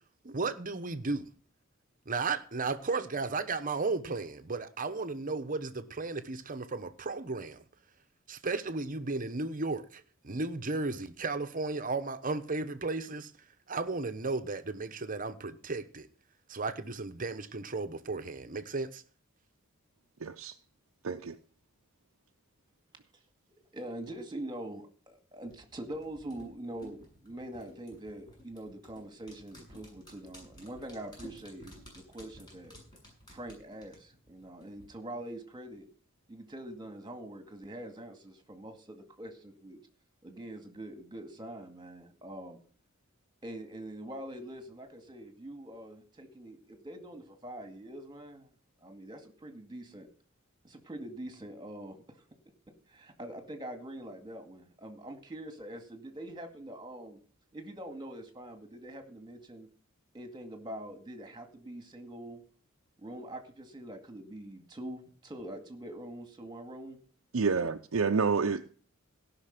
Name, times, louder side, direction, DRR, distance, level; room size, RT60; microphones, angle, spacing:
voice 1, 0.2-1.3 2.1-7.6 8.3-13.3 13.7-16.1 16.5-19.0, right 3 dB, 40° right, 1.0 m, -34 dB
voice 2, 20.2-20.5 21.0-21.4 67.3-68.7, right 5 dB, 85° right, 0.7 m, -29 dB
voice 3, 23.7-32.8 33.3-35.9 36.3-39.8 40.2-42.6 43.4-48.5 48.8-50.1 50.6-52.3 52.9-57.2 57.5-59.7 60.1-62.4 63.0-67.0 67.5-67.6, right 1 dB, 20° right, 2.1 m, -44 dB
sound 1, 25.5-34.9 35.2-35.3, left 1 dB, 20° left, 6.9 m, -54 dB
17.0 x 6.0 x 5.9 m
head